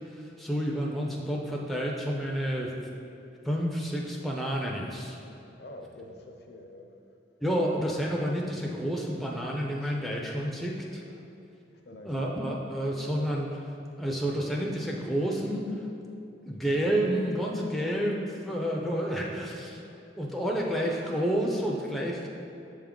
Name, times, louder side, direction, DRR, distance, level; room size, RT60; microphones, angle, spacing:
voice 1, 0.1-2.7 3.4-5.2 7.4-11.0 12.0-13.6 14.0-15.7 16.4-19.8 20.2-22.3, equal, ahead, -2 dB, 0.4 m, -30 dB
voice 2, 5.6-6.9 9.8-9.9 11.1-11.2 11.8-12.3 22.0-22.2, left 1 dB, 60° left, 3 dB, 0.6 m, -47 dB
7.4 x 3.5 x 3.7 m, 2.8 s
head